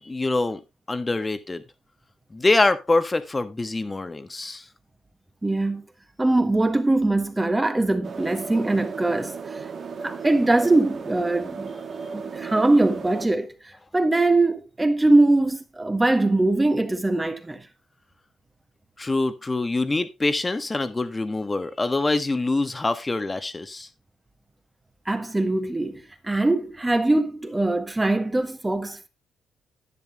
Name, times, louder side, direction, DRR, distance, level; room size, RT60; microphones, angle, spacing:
voice 1, 0.0-0.6 0.9-1.6 2.3-4.6 19.0-23.9, left 2 dB, 20° left, 1.4 m, -24 dB
voice 2, 5.4-5.8 6.2-9.6 10.0-11.7 12.1-13.5 13.9-17.6 25.1-29.1, right 2 dB, 15° right, 1.6 m, -22 dB
sound 1, 8.0-13.3, right 5 dB, 50° right, 1.5 m, -35 dB
11.0 x 9.8 x 2.9 m
cardioid pair, 90°, 0 cm